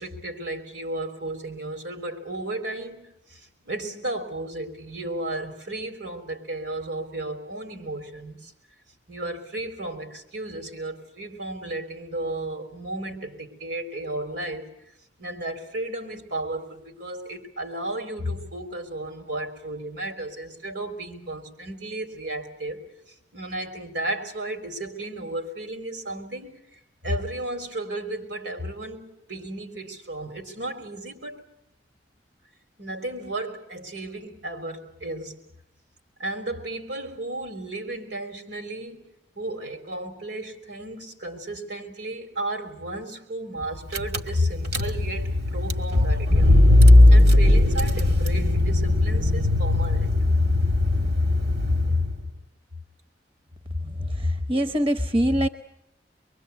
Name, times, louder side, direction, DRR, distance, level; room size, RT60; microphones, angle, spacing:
voice 1, 0.0-8.5 9.1-14.8 15.2-22.8 23.3-31.4 32.8-35.4 36.2-46.5 47.1-50.2 51.9-52.1, right 1 dB, 80° right, 3.8 m, -33 dB
Car / Engine, 43.6-43.7 43.9-52.3, left 1 dB, 60° right, 2.0 m, -18 dB
voice 2, 53.8-55.5, equal, 30° right, 0.9 m, -24 dB
24.5 x 23.0 x 8.3 m
head